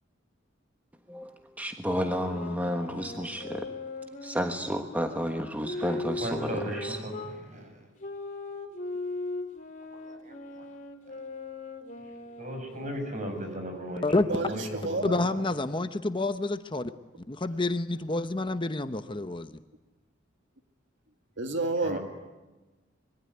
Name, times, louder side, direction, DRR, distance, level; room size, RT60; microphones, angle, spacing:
voice 1, 1.1-3.7 4.2-7.0, equal, 10° right, 5 dB, 1.3 m, -32 dB
sound 1, 1.8-7.3 8.0-13.6, left 3 dB, 40° left, 3.5 m, -39 dB
voice 2, 5.7-7.8 10.0-10.7 12.4-15.3 21.8-22.0, equal, 40° right, 5 dB, 7.0 m, -37 dB
voice 3, 14.3-15.2 21.4-22.0, right 2 dB, 65° right, 6 dB, 2.1 m, -30 dB
voice 4, 15.0-16.9 17.3-19.6, left 2 dB, 25° left, 10 dB, 0.8 m, -28 dB
25.5 x 22.5 x 9.6 m, 1.2 s
head